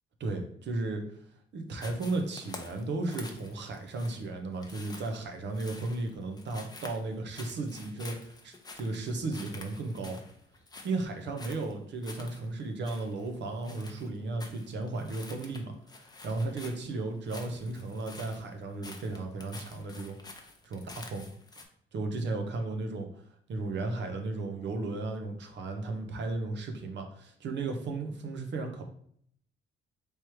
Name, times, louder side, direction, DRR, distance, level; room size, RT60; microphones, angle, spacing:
voice 1, 0.2-1.2 1.5-10.2 10.8-21.3 21.9-23.2 23.5-28.9, right 2 dB, 65° right, 4 dB, 0.8 m, -35 dB
sound 1, 1.7-21.6, left 3 dB, 20° left, 0.7 m, -49 dB
3.3 x 3.1 x 4.5 m, 0.63 s
cardioid pair, 90°, 20 cm